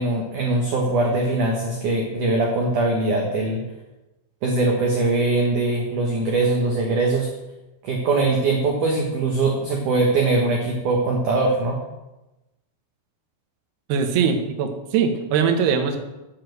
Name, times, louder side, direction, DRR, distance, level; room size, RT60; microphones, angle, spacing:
voice 1, 0.0-3.6 4.4-7.3 7.8-11.8, right 2 dB, 85° right, 0 dB, 1.7 m, -21 dB
voice 2, 13.9-16.0, right 6 dB, 70° right, 5 dB, 2.8 m, -21 dB
9.8 x 5.5 x 8.0 m, 1.0 s
omnidirectional pair, 5.6 m